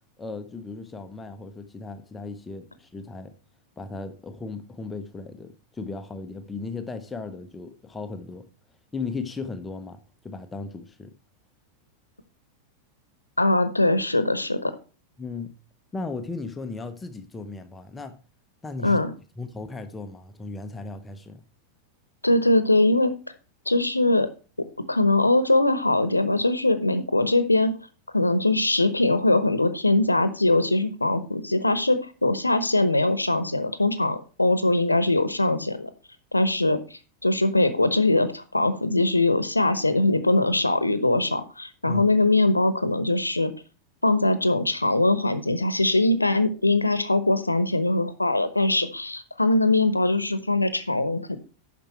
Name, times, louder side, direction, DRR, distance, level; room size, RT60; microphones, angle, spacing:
voice 1, 0.2-3.3 3.8-8.5 8.9-11.1 15.2-15.5 15.9-18.2 18.6-19.0 19.4-21.5 41.9-42.1, left 3 dB, 15° left, 8 dB, 0.8 m, -36 dB
voice 2, 13.4-14.7 18.8-19.1 22.2-23.2 23.7-24.3 24.9-27.7 28.1-35.9 36.3-36.8 37.2-43.5 44.0-51.4, left 2 dB, 85° left, 12 dB, 0.9 m, -22 dB
10.0 x 6.1 x 4.4 m, 0.35 s
figure-of-eight pair, 90°, 0 cm